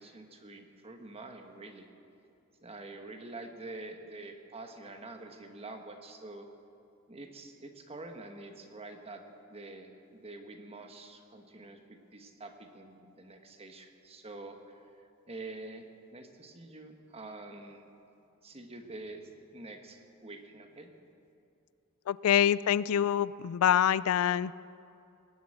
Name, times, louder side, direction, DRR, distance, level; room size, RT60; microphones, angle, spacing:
voice 1, 0.0-1.9 2.6-6.5 7.1-9.2 9.5-14.8 15.3-15.9 16.1-17.9 18.4-20.9, right 2 dB, 30° right, 5 dB, 1.3 m, -46 dB
voice 2, 22.1-24.5, left 9 dB, 80° left, 19 dB, 0.3 m, -25 dB
19.0 x 7.9 x 8.8 m, 2.6 s
head